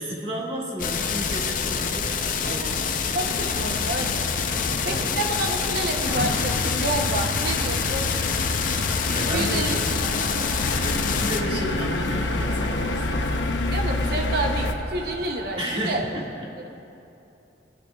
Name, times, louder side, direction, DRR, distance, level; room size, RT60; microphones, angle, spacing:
voice 1, 0.0-2.8 4.4-5.2 9.1-9.8 10.8-13.3 15.6-16.2, equal, 30° right, -4 dB, 2.0 m, -32 dB
sound 1, 0.8-11.4, left 6 dB, 45° left, 0.6 m, -27 dB
voice 2, 2.5-2.8 3.1-4.3 4.8-8.1 9.2-9.8 13.7-16.1, right 2 dB, 55° right, 3 dB, 0.8 m, -29 dB
sound 2, 3.3-14.7, left 2 dB, 85° left, 0.8 m, -28 dB
sound 3, 8.3-16.1, right 2 dB, 80° right, 2.8 m, -39 dB
27.0 x 10.5 x 2.4 m, 2.9 s
head